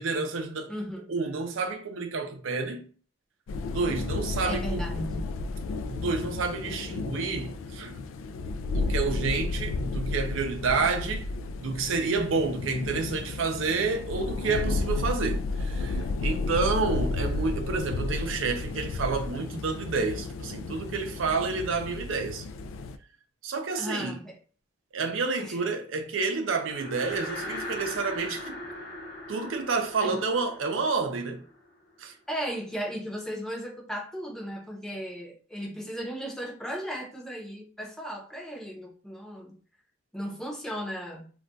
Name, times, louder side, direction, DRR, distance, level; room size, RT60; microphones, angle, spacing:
voice 1, 0.0-0.7 1.1-2.9 3.7-4.8 5.9-7.9 8.7-11.3 11.6-22.5 23.4-24.1 24.9-28.6 29.3-31.4 32.0-32.1, right 4 dB, 85° right, 0.5 m, -29 dB
voice 2, 0.7-1.1 4.4-5.3 23.8-24.4 25.4-25.6 30.0-30.2 32.3-39.6 40.1-41.3, equal, 5° left, 0.7 m, -36 dB
sound 1, 3.5-23.0, left 3 dB, 85° left, 0.3 m, -32 dB
sound 2, 26.5-31.9, left 1 dB, 60° left, 0.9 m, -39 dB
2.3 x 2.2 x 3.8 m
head